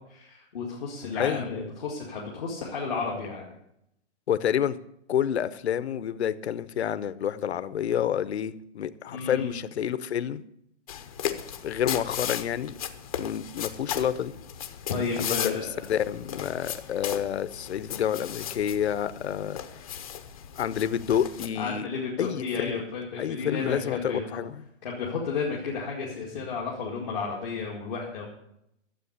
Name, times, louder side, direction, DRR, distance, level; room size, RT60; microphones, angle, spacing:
voice 1, 0.0-3.4 9.1-9.6 14.9-15.8 21.5-24.4 24.8-28.2, left 5 dB, ahead, -25 dB, 0.4 m, -32 dB
voice 2, 1.2-1.5 4.3-4.8 5.1-10.4 11.6-12.7 13.2-14.3 15.2-19.6 20.6-21.9 22.2-22.7 23.2-24.5, left 9 dB, 60° left, 15 dB, 0.8 m, -29 dB
sound 1, 10.9-21.5, left 9 dB, 30° left, 0.8 m, -36 dB
13.0 x 7.8 x 8.0 m, 0.78 s
hypercardioid pair, 175°, 37 cm